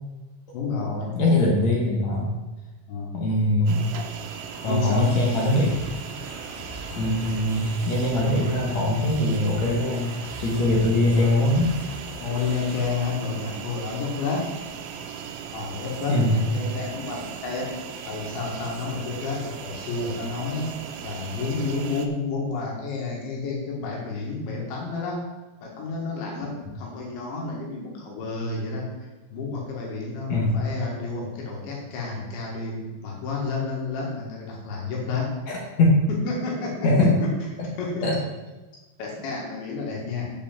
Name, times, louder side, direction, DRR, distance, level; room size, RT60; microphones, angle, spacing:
voice 1, 0.5-1.2 2.9-3.2 4.7-5.3 12.2-14.5 15.5-17.7 18.0-20.7 21.0-25.2 25.6-26.5 26.8-35.3 36.1-36.8 37.8-38.1 39.0-40.2, left 4 dB, 80° left, -2 dB, 4.0 m, -30 dB
voice 2, 1.1-2.3 3.1-3.9 4.6-5.8 7.0-11.7 16.1-16.4 30.3-30.5 35.5-36.0 36.8-37.2 38.0-38.2, left 1 dB, 60° left, -2 dB, 1.9 m, -22 dB
sound 1, 3.7-22.1, right 7 dB, 85° right, 3.1 m, -38 dB
sound 2, 5.0-12.9, left 1 dB, 15° right, 1.8 m, -42 dB
8.1 x 5.7 x 7.3 m, 1.1 s
omnidirectional pair, 5.2 m